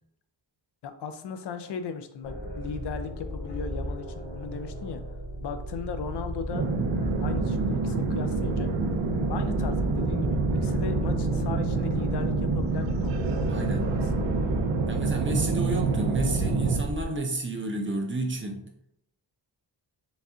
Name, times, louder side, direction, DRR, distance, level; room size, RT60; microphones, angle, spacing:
voice 1, 0.8-5.0 5.4-6.7 7.2-8.7 9.3-13.1 13.5-14.0, left 6 dB, 65° left, 9 dB, 0.5 m, -37 dB
sound 1, 2.2-17.1, equal, 85° left, 1.2 m, -35 dB
sound 2, 6.5-16.8, right 3 dB, 85° right, 0.6 m, -27 dB
voice 2, 13.5-13.9 14.9-18.6, right 2 dB, 25° right, 2 dB, 0.5 m, -31 dB
4.0 x 2.3 x 3.6 m, 0.73 s
wide cardioid pair, 130°, 45 cm